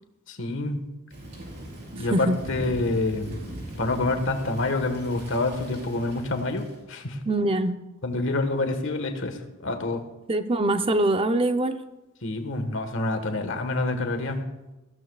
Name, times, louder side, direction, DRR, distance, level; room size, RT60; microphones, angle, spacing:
voice 1, 0.3-0.8 2.0-3.3 3.8-7.2 8.0-9.4 9.6-10.0 12.2-14.4, left 2 dB, 60° left, 6 dB, 1.5 m, -27 dB
Thunder / Rain, 1.1-6.8, equal, 50° right, 4.4 m, -40 dB
voice 2, 7.2-7.8 10.3-11.8, right 1 dB, 25° right, 9 dB, 0.6 m, -23 dB
19.5 x 15.0 x 2.4 m, 1.1 s
head